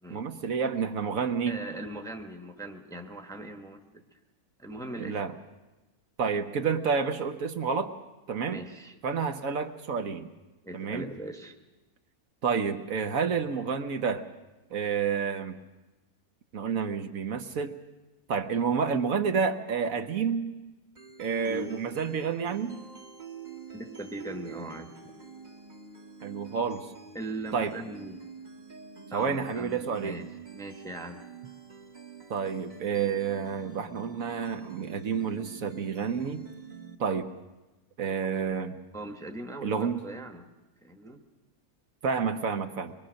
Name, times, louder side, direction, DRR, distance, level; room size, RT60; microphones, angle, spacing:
voice 1, 0.1-1.6 5.0-5.3 6.2-7.9 8.3-8.6 9.0-10.3 10.7-11.0 12.4-14.2 14.7-15.6 16.5-17.7 18.3-20.6 21.2-22.8 26.2-26.9 27.5-27.7 29.1-30.2 32.3-36.5 37.0-37.3 38.0-38.7 39.6-40.0 42.0-42.9, right 6 dB, 65° right, 7 dB, 1.3 m, -29 dB
voice 2, 1.5-4.2 4.6-5.2 8.4-9.0 10.6-11.6 21.4-21.7 23.7-25.0 27.1-28.3 29.1-30.3 30.5-31.2 38.9-40.4 40.8-41.2, right 1 dB, ahead, 5 dB, 1.1 m, -40 dB
sound 1, 21.0-37.0, right 6 dB, 30° right, 1.2 m, -46 dB
24.5 x 22.0 x 6.4 m, 1.1 s
omnidirectional pair, 1.6 m